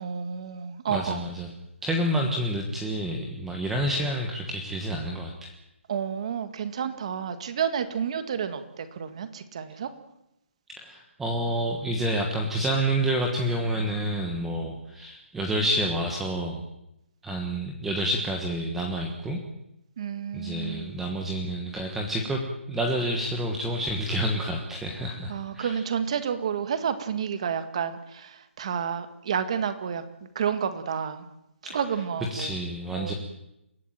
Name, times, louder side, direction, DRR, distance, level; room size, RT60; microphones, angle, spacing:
voice 1, 0.0-1.2 5.9-9.9 20.0-20.9 25.3-30.0 30.4-31.3 31.6-32.5 32.9-33.1, right 7 dB, 30° right, 10 dB, 2.0 m, -30 dB
voice 2, 0.9-1.5 1.8-5.5 10.8-16.6 17.2-19.4 20.3-22.4 22.7-25.8 32.3-33.1, right 1 dB, 5° right, 2 dB, 1.3 m, -28 dB
29.5 x 16.0 x 9.2 m, 0.86 s
hypercardioid pair, 175°, 7 cm